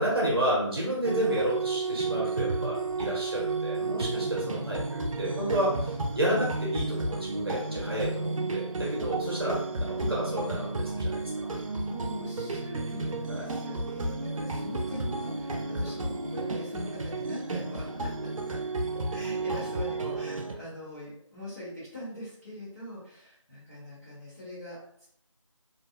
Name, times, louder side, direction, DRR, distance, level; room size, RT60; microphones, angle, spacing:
voice 1, 0.0-11.5 13.3-13.5, right 1 dB, 50° right, -5 dB, 0.9 m, -31 dB
sound 1, 1.0-20.5, right 3 dB, 90° right, 0.4 m, -32 dB
voice 2, 11.5-18.1 19.1-25.1, left 1 dB, 30° left, -11 dB, 1.2 m, -43 dB
2.5 x 2.0 x 2.4 m, 0.68 s
figure-of-eight pair, 180°, 17 cm